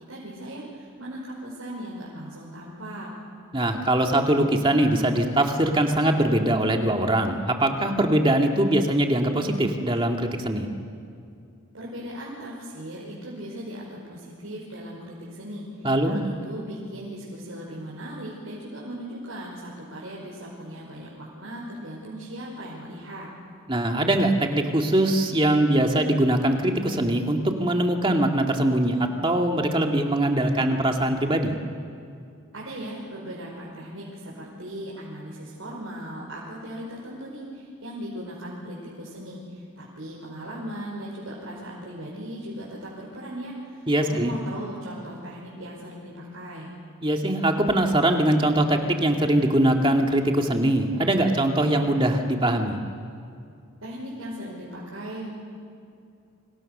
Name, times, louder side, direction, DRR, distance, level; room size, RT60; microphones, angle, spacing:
voice 1, 0.1-3.1 11.7-23.3 32.5-46.7 53.8-55.3, equal, 70° right, -5 dB, 5.7 m, -38 dB
voice 2, 3.5-10.7 15.8-16.2 23.7-31.5 43.9-44.3 47.0-52.8, right 1 dB, 25° right, 3 dB, 2.2 m, -22 dB
29.5 x 26.5 x 6.8 m, 2.4 s
head